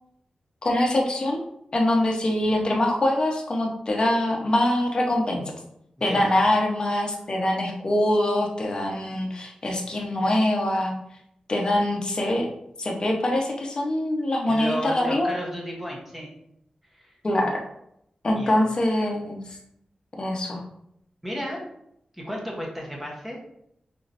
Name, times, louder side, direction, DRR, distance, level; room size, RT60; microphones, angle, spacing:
voice 1, 0.6-1.4 1.7-5.4 6.0-10.9 11.5-12.5 12.8-15.3 17.2-17.6 18.2-19.4 20.2-20.6, left 1 dB, 40° left, 0 dB, 0.8 m, -24 dB
voice 2, 14.5-16.3 16.9-17.1 18.3-18.6 21.2-21.6 22.2-23.4, equal, 5° right, -2 dB, 1.0 m, -33 dB
5.6 x 3.1 x 2.6 m, 0.76 s
wide cardioid pair, 155°, 2 cm